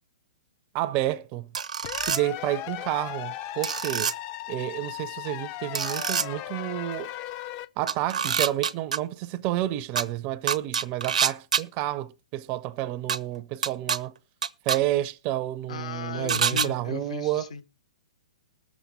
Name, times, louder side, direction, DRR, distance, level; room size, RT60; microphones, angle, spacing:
voice 1, 0.7-1.5 2.0-4.1 4.5-7.1 7.8-14.1 14.6-17.5, right 14 dB, 35° right, 0.5 m, -30 dB
sound 1, 1.5-2.2 3.6-4.1 5.7-6.3 7.9-9.0 10.0-10.1 10.5-11.6 13.1-13.2 13.6-14.0 14.4-14.8 16.3-16.7, right 7 dB, 80° right, 0.8 m, -26 dB
sound 2, 1.8-7.7, left 14 dB, 35° left, 0.6 m, -37 dB
voice 2, 15.7-17.6, left 5 dB, 70° left, 1.5 m, -36 dB
19.0 x 7.3 x 4.1 m
hypercardioid pair, 130°, 4 cm